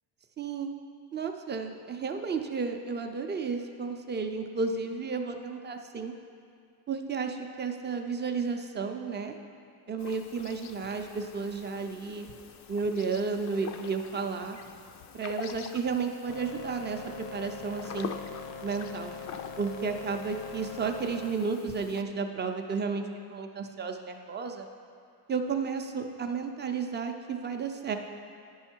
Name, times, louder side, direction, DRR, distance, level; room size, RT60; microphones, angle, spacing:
voice 1, 0.4-0.7 1.1-6.1 6.9-9.3 9.9-12.3 12.7-14.6 15.1-18.1 18.6-19.1 19.6-23.0 23.3-24.7 25.3-28.0, right 5 dB, 25° right, 5 dB, 0.5 m, -32 dB
sound 1, 10.0-22.0, left 7 dB, 45° left, 0.4 m, -46 dB
sound 2, 16.3-21.3, left 5 dB, 85° left, 0.9 m, -42 dB
9.7 x 5.6 x 4.4 m, 2.3 s
cardioid pair, 135°, 40 cm